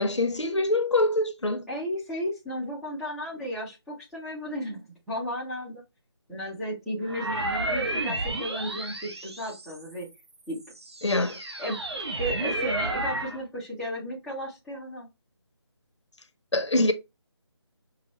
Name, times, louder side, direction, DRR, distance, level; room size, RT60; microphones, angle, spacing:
voice 1, 0.0-1.7 11.0-11.4 16.5-16.9, left 2 dB, 90° left, 0.9 m, -24 dB
voice 2, 1.7-5.8 6.3-10.1 10.5-10.6 11.6-11.8 12.1-15.1, equal, ahead, 0.5 m, -34 dB
sound 1, 7.0-10.0 10.6-13.4, right 2 dB, 65° right, 1.1 m, -31 dB
5.7 x 2.2 x 3.0 m
figure-of-eight pair, 160°, 15 cm